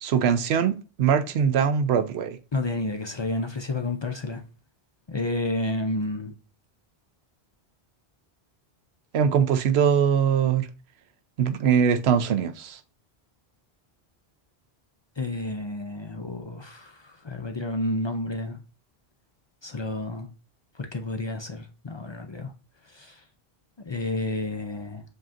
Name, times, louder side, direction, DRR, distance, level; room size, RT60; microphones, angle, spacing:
voice 1, 0.0-2.4 9.1-10.7 11.4-12.8, right 7 dB, 85° right, 0.9 m, -22 dB
voice 2, 2.5-4.4 5.1-6.3 15.2-18.6 19.6-20.3 20.7-22.5 22.9-23.2 23.9-25.0, left 2 dB, 45° left, 0.4 m, -30 dB
7.3 x 2.9 x 2.5 m
omnidirectional pair, 1.0 m